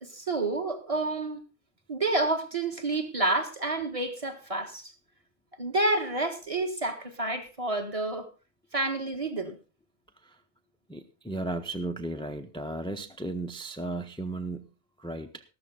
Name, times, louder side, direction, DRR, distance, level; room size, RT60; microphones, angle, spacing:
voice 1, 0.0-1.4 1.9-4.9 5.6-8.3 8.7-9.6, right 2 dB, 25° right, 1.4 m, -29 dB
voice 2, 10.9-14.7 15.0-15.4, right 2 dB, 5° left, 0.3 m, -35 dB
13.5 x 13.0 x 3.8 m
omnidirectional pair, 1.4 m